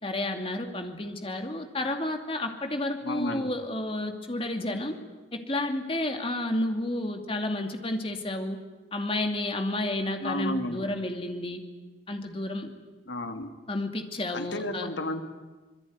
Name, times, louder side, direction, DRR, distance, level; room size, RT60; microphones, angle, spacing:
voice 1, 0.0-5.0 5.3-8.6 8.9-11.6 12.1-12.7 13.7-14.9, left 1 dB, 30° left, 5 dB, 2.6 m, -31 dB
voice 2, 3.0-3.5 10.2-10.9 13.1-13.5 14.3-15.2, left 1 dB, 75° left, 6 dB, 2.6 m, -32 dB
26.5 x 21.5 x 9.6 m, 1.2 s
head